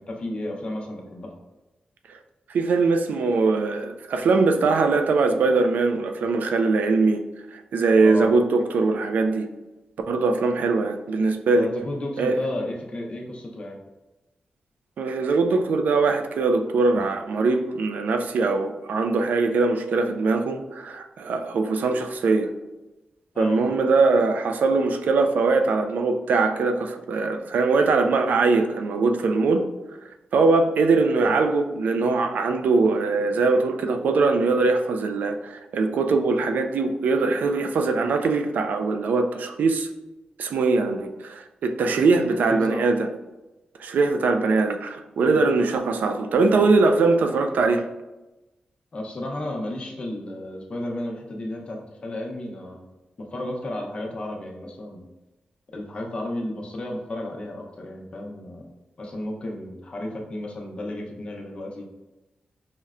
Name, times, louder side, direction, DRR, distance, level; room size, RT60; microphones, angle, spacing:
voice 1, 0.0-1.3 8.0-8.3 11.5-13.8 23.3-23.6 42.5-42.9 45.2-45.4 48.9-52.9 53.2-55.0 55.7-58.7 59.0-61.9, left 1 dB, 40° left, 0 dB, 0.6 m, -33 dB
voice 2, 2.5-7.2 7.5-9.5 10.1-11.7 12.2-12.4 15.0-22.5 23.4-29.6 30.3-39.9 40.4-43.1 43.8-47.8, right 3 dB, 90° right, 6 dB, 0.3 m, -21 dB
5.5 x 2.1 x 2.4 m, 1.0 s
wide cardioid pair, 135°, 3 cm